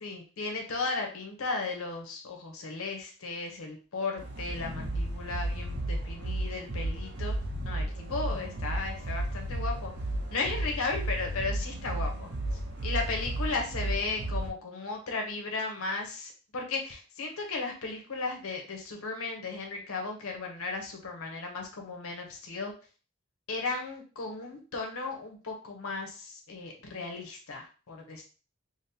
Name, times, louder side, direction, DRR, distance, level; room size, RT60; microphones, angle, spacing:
voice 1, 0.0-7.3 7.6-9.9 10.3-22.7 23.5-28.2, left 3 dB, 85° left, 2 dB, 0.8 m, -35 dB
sound 1, 4.2-14.5, right 1 dB, 50° right, 0.7 m, -33 dB
5.0 x 2.1 x 2.8 m, 0.37 s
head